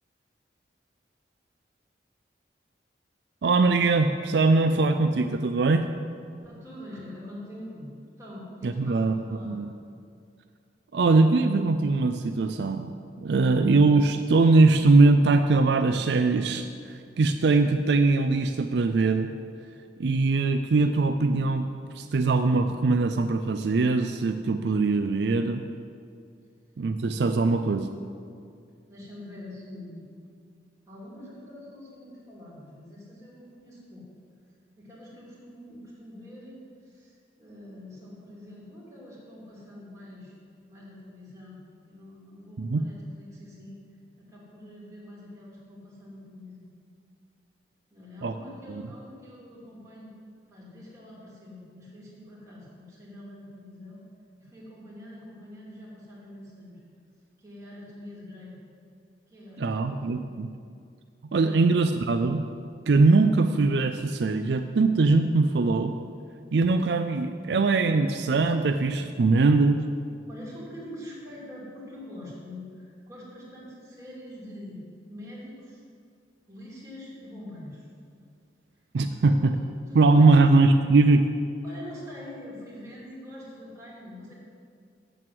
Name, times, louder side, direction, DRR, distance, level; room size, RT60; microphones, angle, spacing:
voice 1, 3.4-5.9 8.6-9.1 9.4-9.7 10.9-12.9 13.2-19.3 20.0-21.7 21.9-25.6 26.8-27.9 42.6-42.8 48.2-48.3 59.6-60.5 61.3-62.4 62.9-65.9 66.5-69.8 78.9-79.5 79.9-81.3, right 3 dB, 70° right, 8 dB, 0.4 m, -21 dB
voice 2, 6.4-7.9 8.2-9.6 27.4-27.6 28.9-30.0 30.9-34.1 34.8-40.3 40.7-41.6 41.8-43.8 44.2-46.7 47.9-50.1 50.5-54.0 54.4-56.8 57.4-58.6 59.3-60.0 61.4-61.6 70.3-75.8 76.5-77.9 79.0-80.4 81.6-84.3, left 1 dB, 20° right, -7 dB, 2.9 m, -44 dB
7.7 x 7.7 x 7.7 m, 2.3 s
head